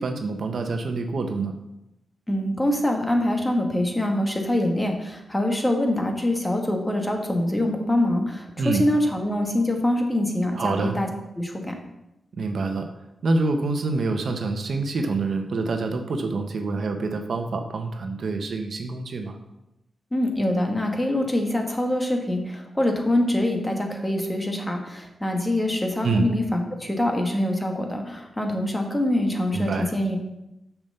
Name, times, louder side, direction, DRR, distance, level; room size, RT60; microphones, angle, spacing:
voice 1, 0.0-1.5 8.6-8.8 10.5-11.0 12.3-12.9 13.2-19.4 26.0-26.3 29.5-29.9, right 3 dB, 65° right, 5 dB, 1.1 m, -26 dB
voice 2, 2.3-11.1 11.4-11.8 20.1-30.2, left 1 dB, 15° left, 2 dB, 1.7 m, -24 dB
7.2 x 6.0 x 6.8 m, 0.91 s
cardioid pair, 90°, 0 cm